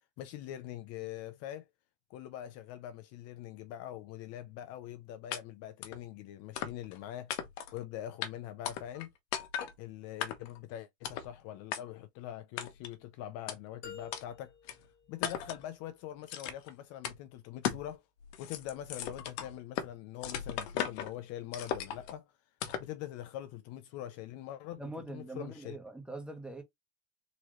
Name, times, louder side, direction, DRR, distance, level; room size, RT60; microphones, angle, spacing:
voice 1, 0.2-1.7 2.1-7.4 7.7-9.1 9.8-14.8 15.1-18.0 18.4-22.3 22.8-25.8, left 12 dB, 50° left, 0.6 m, -43 dB
sound 1, 5.3-5.4 5.8-6.0 6.5-7.0 7.3-7.8 8.2-8.3 8.6-9.1 9.3-9.7 10.2-10.6 11.0-11.3 11.7-11.8 12.6-12.9 13.5-13.6 14.1-14.2 14.7-14.8 15.2-15.6 16.3-16.7 17.0-17.2 17.6-17.9 18.2-19.9 20.2-21.1 21.5-22.1 22.6-22.9, left 9 dB, 75° left, 1.1 m, -37 dB
sound 2, 13.8-15.9, left 7 dB, 35° left, 1.2 m, -51 dB
voice 2, 24.8-26.6, right 2 dB, 5° right, 1.2 m, -43 dB
3.9 x 2.9 x 3.1 m
supercardioid pair, 130°, 33 cm